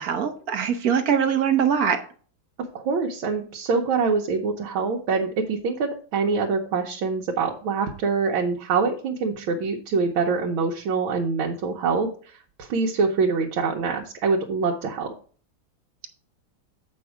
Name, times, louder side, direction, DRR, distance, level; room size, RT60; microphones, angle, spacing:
voice 1, 0.0-2.0, right 7 dB, 55° right, 6 dB, 1.3 m, -22 dB
voice 2, 2.7-15.1, right 4 dB, 80° right, 0 dB, 1.8 m, -25 dB
7.9 x 5.4 x 4.7 m, 0.42 s
omnidirectional pair, 2.2 m